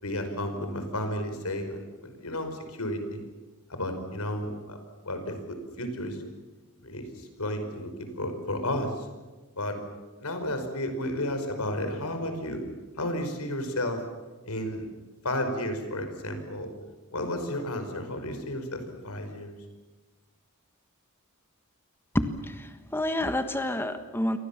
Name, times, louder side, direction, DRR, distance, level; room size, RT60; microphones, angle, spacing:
voice 1, 0.0-3.2 3.7-4.8 5.0-6.2 6.8-9.1 9.6-9.8 10.2-12.6 13.0-14.0 14.4-14.9 15.2-16.7 17.1-19.5, left 1 dB, 85° left, 7 dB, 5.2 m, -32 dB
voice 2, 22.1-24.4, left 1 dB, 10° left, 8 dB, 1.4 m, -29 dB
29.5 x 23.5 x 7.3 m, 1.2 s
head